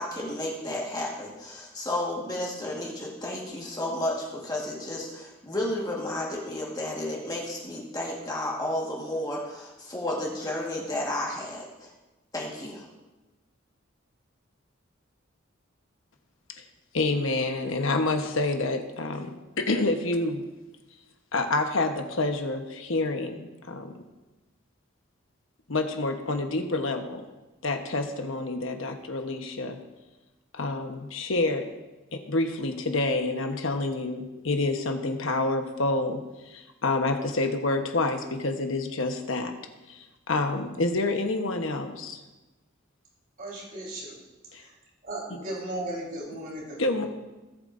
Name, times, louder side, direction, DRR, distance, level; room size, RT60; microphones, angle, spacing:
voice 1, 0.0-11.9 12.3-12.9, left 1 dB, 20° left, -3 dB, 1.6 m, -32 dB
voice 2, 16.9-20.5 21.3-23.9 25.7-27.3 27.6-29.8 30.5-31.7 32.1-39.5 39.9-42.2 44.5-44.6 45.3-45.4 46.8-47.1, left 2 dB, 75° left, 5 dB, 1.1 m, -28 dB
voice 3, 43.4-44.1 44.6-44.7 45.0-47.1, right 1 dB, 45° right, -4 dB, 4.1 m, -36 dB
18.5 x 8.5 x 2.6 m, 1.1 s
head